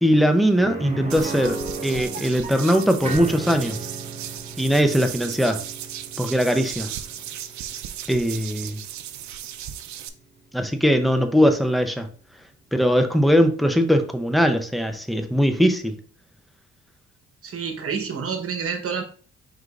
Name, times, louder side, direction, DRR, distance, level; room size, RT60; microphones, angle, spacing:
voice 1, 0.0-3.8 4.6-5.6 6.2-6.9 8.1-8.8 10.5-12.1 12.7-15.9, equal, ahead, 7 dB, 0.6 m, -20 dB
sound 1, 0.6-10.3 10.6-10.7 13.2-13.3, right 3 dB, 25° right, 1.0 m, -36 dB
sound 2, 1.1-10.1, right 11 dB, 70° right, 0.5 m, -36 dB
voice 2, 17.4-19.0, right 6 dB, 50° right, 5 dB, 1.1 m, -28 dB
4.9 x 3.8 x 2.4 m, 0.43 s
cardioid pair, 90°, 30 cm